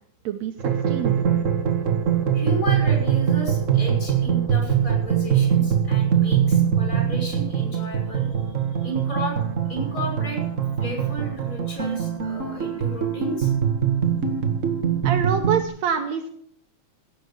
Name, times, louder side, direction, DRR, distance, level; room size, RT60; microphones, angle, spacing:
voice 1, 0.2-1.3 15.0-16.3, right 7 dB, 70° right, 5 dB, 2.0 m, -26 dB
sound 1, 0.6-15.6, right 8 dB, 40° right, 1.1 m, -22 dB
voice 2, 2.3-8.5 8.8-9.4 9.7-10.4 10.8-13.5, equal, 25° left, 0 dB, 6.0 m, -33 dB
16.0 x 6.9 x 8.3 m, 0.66 s
omnidirectional pair, 3.5 m